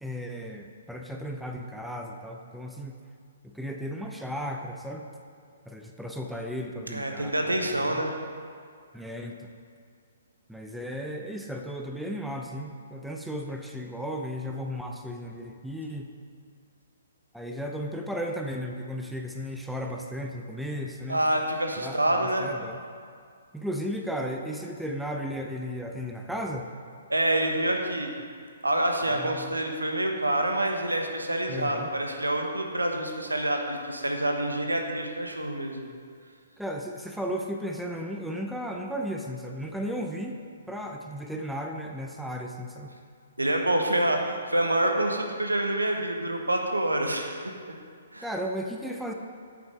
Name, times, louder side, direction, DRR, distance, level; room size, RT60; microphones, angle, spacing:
voice 1, 0.0-3.0 3.4-5.1 5.7-8.0 8.9-9.5 10.5-16.1 17.3-21.2 21.8-22.8 23.5-26.7 29.0-29.6 31.5-31.9 36.6-40.4 40.7-42.9 48.2-49.1, equal, ahead, 2 dB, 0.6 m, -35 dB
voice 2, 6.9-8.2 21.1-22.5 27.1-28.1 28.6-35.8 43.4-47.5 48.1-48.3, right 1 dB, 80° right, 3 dB, 1.2 m, -27 dB
9.1 x 7.6 x 5.2 m, 2.2 s
figure-of-eight pair, 125°, 0 cm